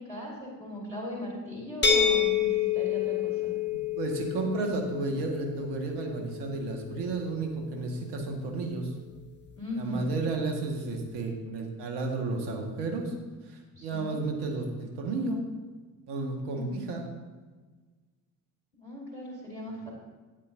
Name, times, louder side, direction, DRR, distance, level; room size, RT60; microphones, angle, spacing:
voice 1, 0.0-3.5 9.6-10.1 13.7-14.2 16.5-16.9 18.8-19.9, left 1 dB, 90° left, -10 dB, 3.1 m, -38 dB
sound 1, 1.8-7.6, left 7 dB, 25° left, 1.3 m, -29 dB
voice 2, 4.0-8.9 9.7-13.1 13.4-15.4 16.1-17.1, right 3 dB, 55° right, 2 dB, 1.8 m, -32 dB
12.0 x 8.9 x 2.7 m, 1.3 s
figure-of-eight pair, 50°, 47 cm